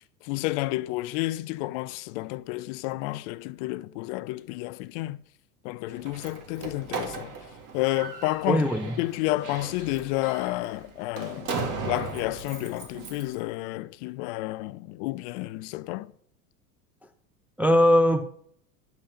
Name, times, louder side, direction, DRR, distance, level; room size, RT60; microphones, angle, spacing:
voice 1, 0.0-5.2 5.6-7.4 7.7-8.7 9.0-11.6 11.8-16.1, left 19 dB, 50° left, 0.5 m, -30 dB
Slam, 5.9-13.3, right 4 dB, 40° right, 2.2 m, -37 dB
voice 2, 8.5-8.9 17.6-18.3, equal, 5° right, 0.3 m, -20 dB
10.5 x 5.4 x 6.5 m
hypercardioid pair, 80°, 45 cm